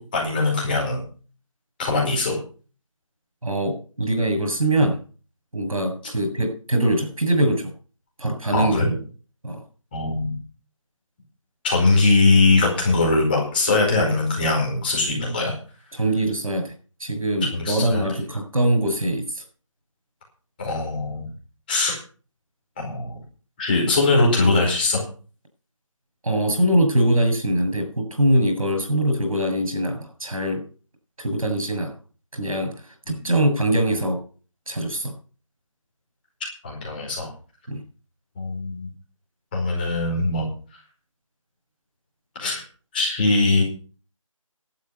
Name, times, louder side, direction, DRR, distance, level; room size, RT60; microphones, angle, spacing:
voice 1, 0.1-1.0 1.8-2.3 8.5-8.9 9.9-10.3 11.6-15.5 17.5-18.0 20.6-21.3 21.7-22.0 22.8-23.1 23.6-25.0 33.1-33.3 36.6-37.3 38.4-38.9 39.5-40.4 42.4-42.6 42.9-43.6, left 3 dB, 15° left, -2 dB, 4.8 m, -21 dB
voice 2, 3.4-5.0 5.5-7.7 8.2-9.0 9.4-9.6 15.9-16.7 17.0-19.4 26.2-30.6 31.2-31.9 32.3-34.2 34.7-35.1 37.7-37.8, right 1 dB, 80° right, 5 dB, 7.2 m, -23 dB
12.0 x 9.3 x 7.1 m, 0.39 s
figure-of-eight pair, 175°, 17 cm